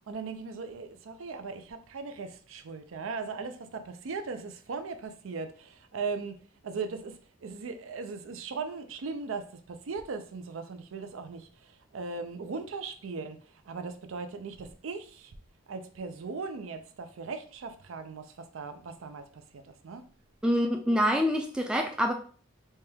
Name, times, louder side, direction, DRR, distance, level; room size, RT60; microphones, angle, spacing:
voice 1, 0.1-11.5 11.9-13.4 13.7-15.3 15.7-20.0, right 4 dB, 80° right, 0.5 m, -38 dB
voice 2, 20.4-22.1, equal, 5° right, 0.3 m, -26 dB
4.3 x 2.3 x 3.3 m
head